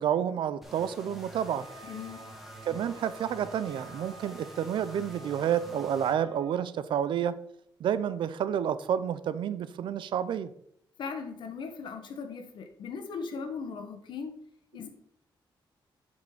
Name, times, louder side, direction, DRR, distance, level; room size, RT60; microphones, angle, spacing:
voice 1, 0.0-1.7 2.7-7.4 7.8-10.5, right 9 dB, 70° right, 15 dB, 0.5 m, -29 dB
sound 1, 0.6-6.1, right 1 dB, ahead, 1.3 m, -47 dB
Wind instrument woodwind instrument, 1.4-6.6, right 2 dB, 50° right, 1.4 m, -51 dB
voice 2, 1.8-2.2 11.0-14.3 14.7-14.9, left 5 dB, 65° left, 6 dB, 1.3 m, -38 dB
7.9 x 5.4 x 4.9 m, 0.70 s
wide cardioid pair, 170°, 9 cm